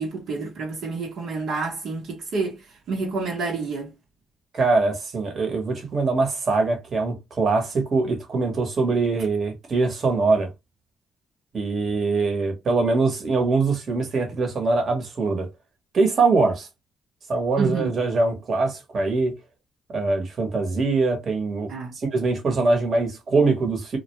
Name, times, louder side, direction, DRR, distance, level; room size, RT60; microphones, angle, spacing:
voice 1, 0.0-3.9 17.6-18.0 21.7-21.9, right 4 dB, 70° right, 0.8 m, -29 dB
voice 2, 4.5-10.5 11.5-15.5 15.9-16.7 17.3-19.3 19.9-24.0, right 3 dB, 50° right, 1.0 m, -23 dB
2.2 x 2.1 x 2.9 m
cardioid pair, 90°, 0 cm